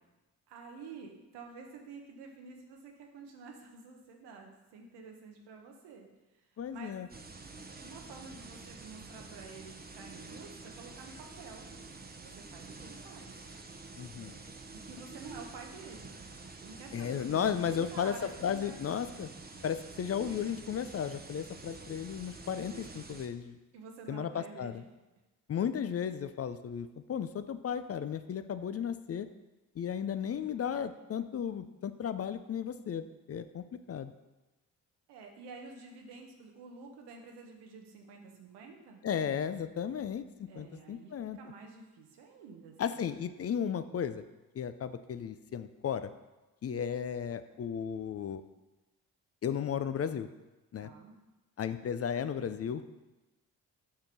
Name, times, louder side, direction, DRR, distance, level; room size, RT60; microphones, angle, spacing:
voice 1, 0.5-6.1 6.7-7.0 7.8-11.8 12.2-13.3 14.2-16.2 16.6-19.2 23.7-24.8 35.1-39.0 40.5-41.1 41.4-42.8 50.8-51.2, right 4 dB, 90° right, 2 dB, 1.1 m, -50 dB
voice 2, 6.6-7.1 14.0-14.4 16.9-19.3 19.6-23.6 24.1-24.8 25.5-29.3 29.8-34.1 39.0-41.4 42.8-44.2 44.5-46.1 46.6-48.4 49.4-50.3 50.7-50.9 51.6-52.8, left 8 dB, 40° left, 11 dB, 0.5 m, -35 dB
sound 1, 7.1-23.3, right 3 dB, 25° right, 0.8 m, -48 dB
6.5 x 3.7 x 5.8 m, 1.1 s
supercardioid pair, 55°, 39 cm